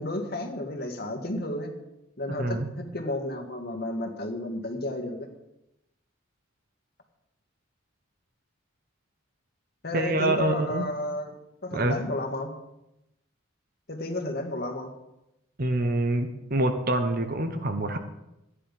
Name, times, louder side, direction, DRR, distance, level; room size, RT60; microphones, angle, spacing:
voice 1, 0.0-1.7 2.2-5.3 9.8-11.4 11.6-12.6 13.9-14.9, left 1 dB, 50° left, 4 dB, 1.8 m, -32 dB
voice 2, 9.9-10.8 11.7-12.0 15.6-18.0, right 1 dB, 45° right, 7 dB, 1.0 m, -26 dB
12.5 x 10.0 x 5.3 m, 0.88 s
head